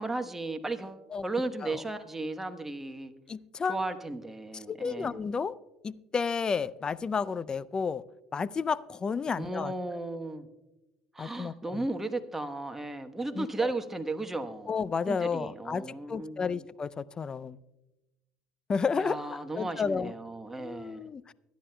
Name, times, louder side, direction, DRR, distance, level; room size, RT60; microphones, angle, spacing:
voice 1, 0.0-3.1 3.7-5.2 9.4-10.5 11.1-14.7 15.1-16.6 19.0-21.1, right 2 dB, 10° right, 6 dB, 1.1 m, -35 dB
voice 2, 3.3-3.8 4.5-5.6 5.8-8.0 8.3-9.7 11.2-11.9 13.3-13.7 14.7-17.6 18.7-20.1 20.6-21.3, left 5 dB, 30° left, 20 dB, 0.4 m, -32 dB
24.0 x 10.5 x 2.3 m, 0.99 s
hypercardioid pair, 70°, 3 cm